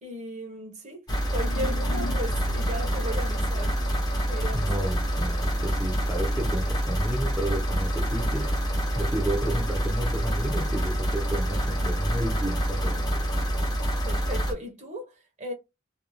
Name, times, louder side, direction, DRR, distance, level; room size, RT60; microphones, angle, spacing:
voice 1, 0.0-3.8 4.3-4.9 14.0-15.5, equal, 35° right, 0.9 m, -36 dB
sound 1, 1.1-14.5, right 1 dB, 20° left, 0.8 m, -27 dB
sound 2, 1.4-3.2, left 4 dB, 75° left, 0.3 m, -38 dB
voice 2, 4.5-8.5 8.9-13.3, right 1 dB, 5° right, 0.7 m, -32 dB
2.5 x 2.3 x 3.0 m
head